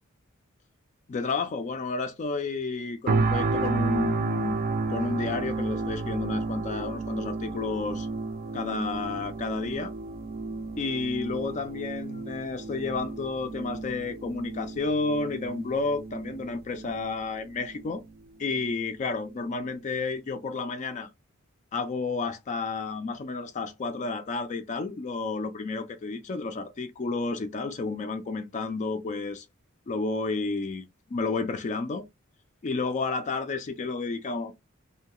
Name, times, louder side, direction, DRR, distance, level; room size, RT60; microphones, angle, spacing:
voice 1, 1.1-4.6 4.9-8.1 8.5-9.9 10.8-18.0 18.4-21.1 21.7-29.5 29.9-30.9 31.1-32.0 32.6-34.5, left 3 dB, 35° left, 0.3 m, -31 dB
sound 1, 3.1-18.1 18.6-18.7, right 3 dB, 45° right, 0.4 m, -32 dB
2.7 x 2.2 x 2.8 m
head